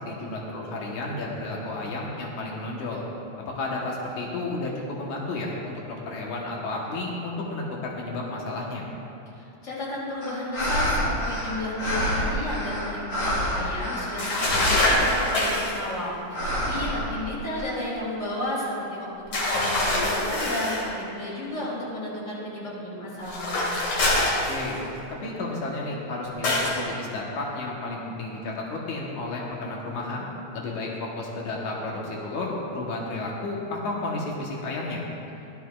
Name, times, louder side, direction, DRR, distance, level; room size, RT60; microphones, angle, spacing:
voice 1, 0.0-3.0 3.4-8.8 16.8-17.0 24.5-24.8 25.2-30.3 30.5-35.0, left 2 dB, 85° left, -3 dB, 2.7 m, -32 dB
voice 2, 9.3-23.6, left 1 dB, 25° left, -7 dB, 3.2 m, -33 dB
sound 1, 10.2-15.7 16.3-17.7, equal, 45° left, 2.7 m, -28 dB
sound 2, 14.2-15.8 19.3-20.9 23.2-25.0 26.4-26.8, left 1 dB, 60° left, 3.2 m, -24 dB
16.0 x 12.5 x 2.4 m, 2.7 s
omnidirectional pair, 3.4 m